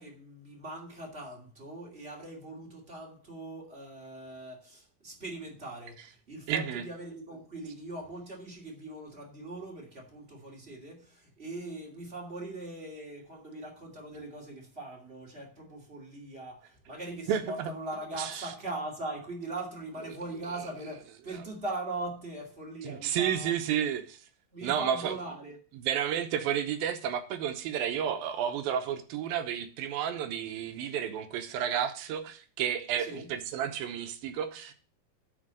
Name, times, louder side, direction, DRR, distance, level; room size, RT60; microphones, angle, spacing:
voice 1, 0.0-23.6 24.5-25.6 33.0-33.3, right 2 dB, 20° right, 2.3 m, -41 dB
voice 2, 6.5-6.8 17.3-17.7 18.2-18.5 22.8-24.2 24.6-25.1 25.7-34.7, right 9 dB, 75° right, 2.5 m, -31 dB
9.8 x 4.6 x 7.7 m
omnidirectional pair, 4.4 m